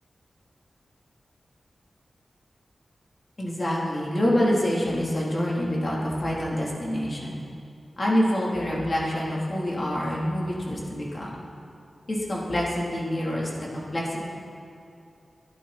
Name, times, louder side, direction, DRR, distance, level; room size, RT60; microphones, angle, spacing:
voice 1, 3.4-7.4 8.0-11.3 12.1-14.2, equal, 40° left, -4 dB, 3.5 m, -26 dB
22.5 x 12.0 x 4.4 m, 2.6 s
wide cardioid pair, 110°, 0 cm